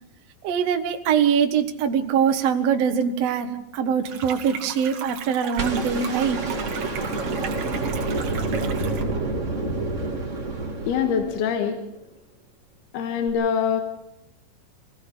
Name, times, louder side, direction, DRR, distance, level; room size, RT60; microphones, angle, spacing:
voice 1, 0.4-6.4, right 7 dB, 85° right, 5 dB, 1.4 m, -23 dB
sound 1, 4.0-9.0, right 7 dB, 55° right, 2.7 m, -37 dB
sound 2, 5.6-11.7 13.3-13.4, right 2 dB, 25° right, 1.6 m, -28 dB
voice 2, 10.9-11.8 12.9-13.8, left 7 dB, 70° left, 6 dB, 2.9 m, -24 dB
24.0 x 17.0 x 6.4 m, 0.86 s
omnidirectional pair, 5.3 m